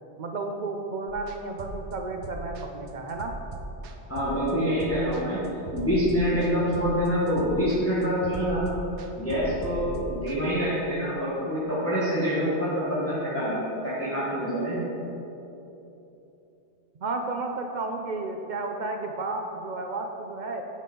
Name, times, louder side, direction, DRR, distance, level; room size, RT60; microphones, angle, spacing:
voice 1, 0.2-3.3 17.0-20.6, right 3 dB, 55° right, 3 dB, 0.6 m, -32 dB
sound 1, 1.1-10.4, right 2 dB, 85° right, 0.9 m, -38 dB
voice 2, 4.1-5.4 5.7-8.7 9.1-14.8, equal, 15° left, -9 dB, 1.2 m, -26 dB
8.2 x 5.4 x 3.8 m, 3.0 s
omnidirectional pair, 1.2 m